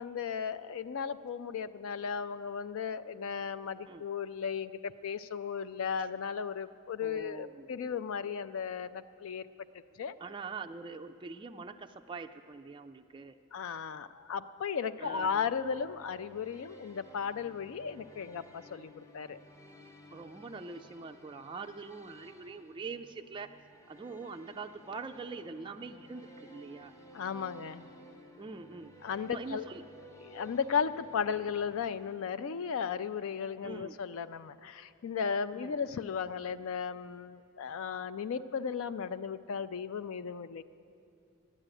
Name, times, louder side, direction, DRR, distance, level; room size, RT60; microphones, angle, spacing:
voice 1, 0.0-9.4 10.0-10.1 13.5-19.4 27.1-27.8 29.0-29.6 30.2-40.6, left 6 dB, 65° left, 12 dB, 0.4 m, -35 dB
voice 2, 7.0-7.7 10.2-13.3 15.0-15.5 20.1-23.5 23.9-26.9 28.4-28.9 29.2-29.9 33.6-34.0 35.5-35.8, right 4 dB, 20° right, 6 dB, 0.3 m, -44 dB
sound 1, 15.1-32.8, equal, 15° left, 0.7 m, -56 dB
11.5 x 9.9 x 9.0 m, 2.5 s
head